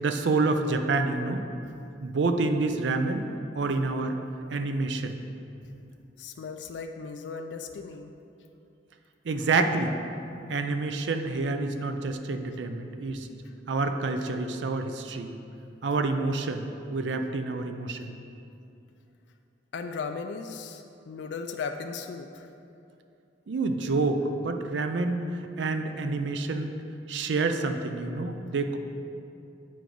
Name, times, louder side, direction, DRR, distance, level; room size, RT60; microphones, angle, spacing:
voice 1, 0.0-1.5 2.0-3.3 3.6-4.2 4.5-5.2 9.3-9.9 10.5-13.3 13.7-15.3 15.8-18.1 23.5-25.2 25.6-26.7 27.1-28.8, right 3 dB, 75° right, 7 dB, 0.5 m, -28 dB
voice 2, 6.2-8.1 19.7-22.5, left 5 dB, 70° left, 5 dB, 0.3 m, -37 dB
8.6 x 4.6 x 3.8 m, 2.7 s
head